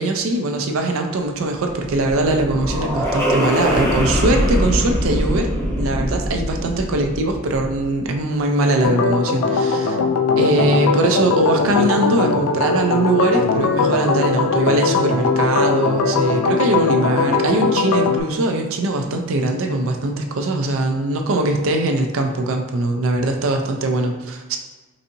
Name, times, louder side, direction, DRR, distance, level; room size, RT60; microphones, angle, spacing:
voice 1, 0.0-5.5 5.8-10.0 10.4-24.6, right 2 dB, 70° right, 3 dB, 0.5 m, -21 dB
sound 1, 1.7-8.0, equal, 10° left, 0.6 m, -22 dB
Organ, 8.8-18.2, left 4 dB, 80° left, 0.3 m, -20 dB
4.0 x 2.6 x 2.6 m, 1.2 s
head